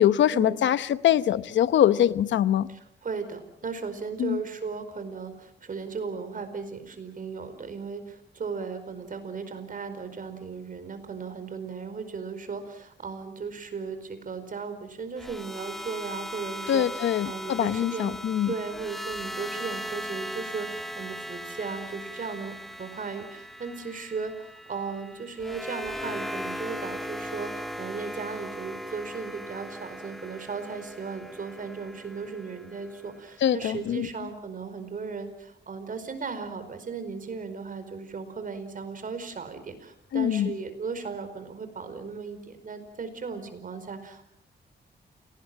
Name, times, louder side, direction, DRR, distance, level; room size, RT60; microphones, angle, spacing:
voice 1, 0.0-2.7 4.2-4.4 16.7-18.5 33.4-34.1 40.1-40.5, left 11 dB, 90° left, 15 dB, 0.9 m, -23 dB
voice 2, 2.7-18.2 18.5-44.3, right 5 dB, 45° right, 9 dB, 4.8 m, -36 dB
sound 1, 15.2-33.3, equal, ahead, 1.6 m, -38 dB
28.5 x 18.5 x 7.6 m, 0.75 s
cardioid pair, 105°, 19 cm